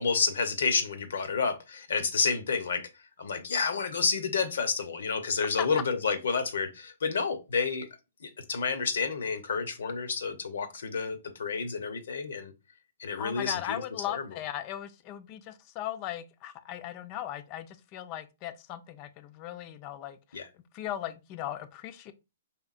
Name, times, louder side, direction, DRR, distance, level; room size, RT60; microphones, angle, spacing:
voice 1, 0.0-2.9 3.2-7.9 8.2-12.5 13.0-13.8 14.1-14.2 20.3-20.5, left 5 dB, 70° left, 0.7 m, -30 dB
voice 2, 13.2-20.4 20.7-22.1, left 12 dB, 35° left, 0.5 m, -38 dB
4.4 x 3.4 x 2.4 m
hypercardioid pair, 125°, 0 cm